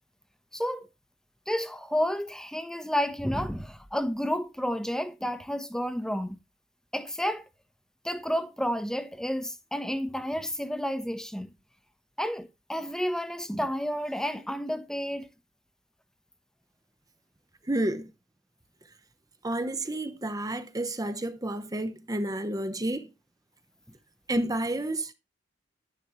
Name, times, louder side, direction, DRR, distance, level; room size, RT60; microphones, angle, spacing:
voice 1, 0.5-0.9 1.5-6.4 6.9-7.5 8.0-11.5 12.2-15.3, equal, 5° left, 0.9 m, -31 dB
voice 2, 17.7-18.1 19.4-23.1 24.3-25.1, right 1 dB, 20° right, 0.8 m, -30 dB
11.0 x 11.0 x 3.1 m
head